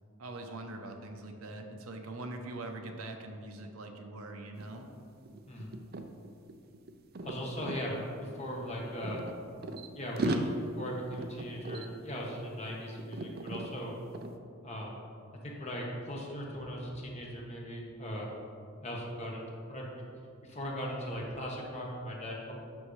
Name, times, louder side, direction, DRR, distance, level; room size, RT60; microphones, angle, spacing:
voice 1, 0.2-4.9, right 2 dB, 85° right, 4 dB, 0.8 m, -43 dB
sound 1, 4.6-4.7 5.0-7.8 8.6-9.9 10.2-12.7 13.0-13.7 14.1-14.4, right 1 dB, 45° right, 0.5 m, -37 dB
voice 2, 7.2-9.2 9.9-14.0 14.6-15.0 15.4-18.3 18.8-19.8 20.4-22.5, equal, 30° left, -2 dB, 1.2 m, -39 dB
9.4 x 6.3 x 3.2 m, 2.4 s
head